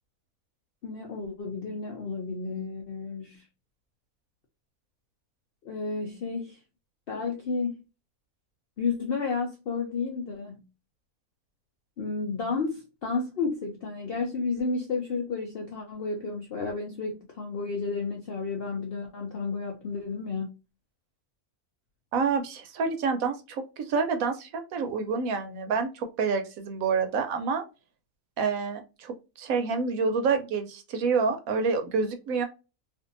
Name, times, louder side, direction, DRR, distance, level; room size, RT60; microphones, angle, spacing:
voice 1, 0.8-3.5 5.6-6.6 7.1-7.7 8.8-10.6 12.0-20.5, left 4 dB, 70° left, 0.5 m, -32 dB
voice 2, 22.1-27.6 28.4-32.4, right 5 dB, 70° right, 1.0 m, -28 dB
2.6 x 2.4 x 2.5 m
omnidirectional pair, 1.6 m